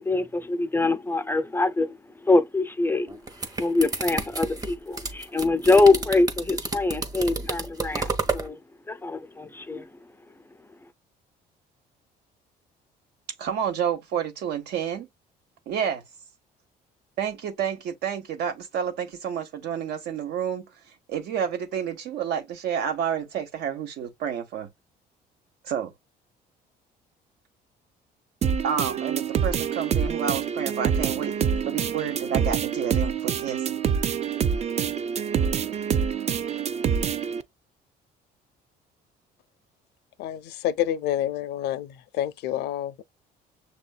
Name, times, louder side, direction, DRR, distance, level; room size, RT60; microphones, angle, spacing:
voice 1, 0.0-8.6 8.9-9.9, left 3 dB, 15° left, 0.4 m, -24 dB
sound 1, 3.1-8.5, right 3 dB, 20° right, 1.0 m, -31 dB
voice 2, 13.4-15.1 15.7-16.0 17.2-20.6 21.1-24.7 25.6-25.9 28.6-31.3 31.6-33.7, right 8 dB, 75° right, 1.4 m, -29 dB
sound 2, 28.4-37.4, right 7 dB, 40° right, 0.5 m, -26 dB
voice 3, 40.2-43.0, left 11 dB, 80° left, 0.5 m, -28 dB
6.9 x 2.5 x 2.2 m
cardioid pair, 110°, 17 cm